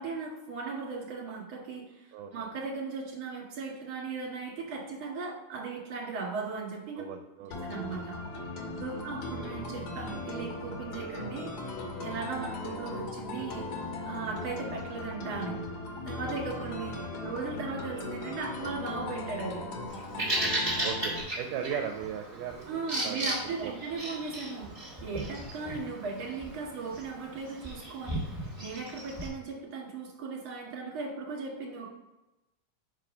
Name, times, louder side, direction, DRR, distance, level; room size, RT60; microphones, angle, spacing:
voice 1, 0.0-7.0 7.6-8.2 8.7-11.5 12.0-13.6 14.0-15.6 16.0-19.6 22.7-24.7 25.0-31.9, right 4 dB, 55° right, -2 dB, 2.8 m, -37 dB
voice 2, 2.1-2.5 7.0-7.6 8.9-9.1 12.3-12.6 14.1-14.3 20.3-20.4 20.8-23.7, right 8 dB, 80° right, 4 dB, 2.1 m, -38 dB
sound 1, 7.5-21.2, left 2 dB, 70° left, 2.3 m, -38 dB
Bird vocalization bird call bird song, 19.9-29.3, right 1 dB, 15° right, 1.2 m, -36 dB
5.2 x 4.6 x 5.0 m, 0.99 s
omnidirectional pair, 3.8 m